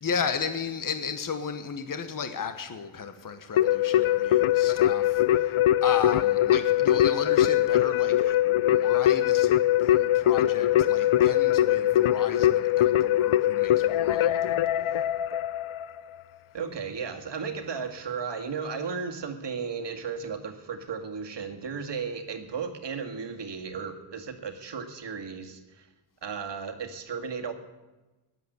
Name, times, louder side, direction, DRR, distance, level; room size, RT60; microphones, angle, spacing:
voice 1, 0.0-5.6 5.8-9.5 9.8-15.0, left 6 dB, 40° left, 9 dB, 1.2 m, -34 dB
Keyboard (musical), 3.6-16.0, left 12 dB, 80° left, 0.7 m, -22 dB
voice 2, 16.5-25.9 26.2-27.5, right 5 dB, 55° right, 6 dB, 2.0 m, -35 dB
17.0 x 11.0 x 8.0 m, 1.1 s
wide cardioid pair, 115°, 49 cm